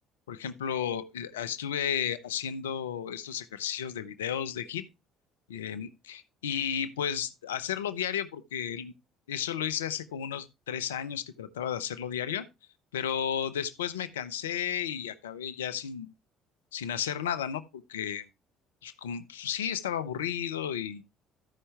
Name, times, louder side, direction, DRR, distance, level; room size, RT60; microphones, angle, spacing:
voice 1, 0.3-4.8 5.5-8.9 9.3-12.5 12.9-16.1 16.7-18.2 18.8-21.0, left 9 dB, 90° left, 0.6 m, -33 dB
14.0 x 5.6 x 3.3 m
hypercardioid pair, 60°, 0 cm